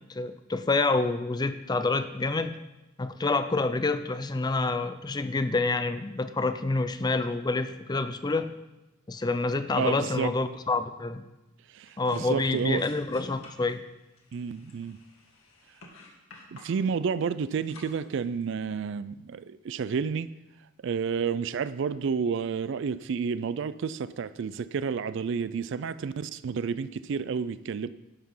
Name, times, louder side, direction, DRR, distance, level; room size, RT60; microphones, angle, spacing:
voice 1, 0.1-2.5 3.0-8.5 9.1-11.2 12.0-13.8, left 3 dB, 20° left, 0.4 m, -27 dB
voice 2, 9.8-10.3 11.7-12.9 14.3-15.0 16.5-20.3 20.8-27.9, right 6 dB, 60° right, 0.3 m, -30 dB
sound 1, 11.8-18.6, left 2 dB, 80° left, 2.0 m, -52 dB
11.0 x 5.9 x 5.5 m
head